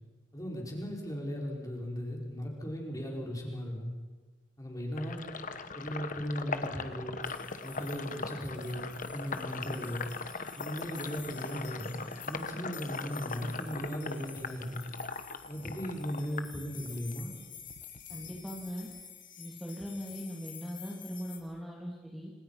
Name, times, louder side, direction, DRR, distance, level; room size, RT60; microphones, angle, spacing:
voice 1, 0.3-3.9 4.6-5.3 5.7-7.2 7.6-10.0 10.6-12.0 12.2-14.8 15.5-17.3, equal, 20° left, -1 dB, 5.5 m, -37 dB
Sink (filling or washing), 5.0-17.2 17.6-19.0, left 4 dB, 45° left, 1.4 m, -40 dB
sound 1, 7.2-21.4, left 9 dB, 70° left, 4.9 m, -50 dB
voice 2, 18.1-18.9 19.4-22.3, equal, ahead, -4 dB, 2.7 m, -40 dB
29.5 x 27.0 x 5.9 m, 1.4 s
head